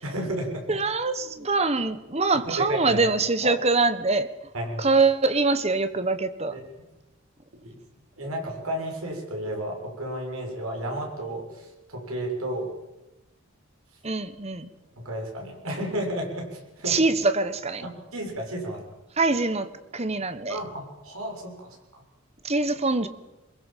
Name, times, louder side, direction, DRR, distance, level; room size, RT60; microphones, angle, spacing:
voice 1, 0.0-0.6 2.4-3.0 3.4-3.5 4.5-4.9 6.5-6.6 7.6-7.8 8.2-12.7 15.0-17.0 17.8-18.8 20.5-22.0, right 1 dB, 80° right, 2 dB, 6.8 m, -32 dB
voice 2, 0.7-4.3 4.8-6.6 14.0-14.7 16.9-17.9 19.2-20.6 22.4-23.1, right 3 dB, 30° right, 12 dB, 1.3 m, -24 dB
23.5 x 21.5 x 7.5 m, 1.0 s
head